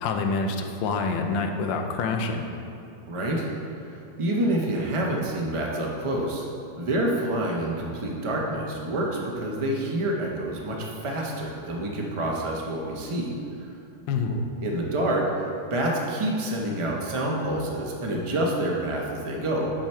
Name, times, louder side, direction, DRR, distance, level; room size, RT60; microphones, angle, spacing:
voice 1, 0.0-2.4 14.1-14.3, left 4 dB, 85° left, 4 dB, 1.4 m, -26 dB
voice 2, 3.1-3.5 3.9-6.4 6.8-13.3 14.6-19.7, right 1 dB, 25° right, -1 dB, 0.6 m, -27 dB
10.0 x 4.9 x 4.4 m, 2.6 s
omnidirectional pair, 2.0 m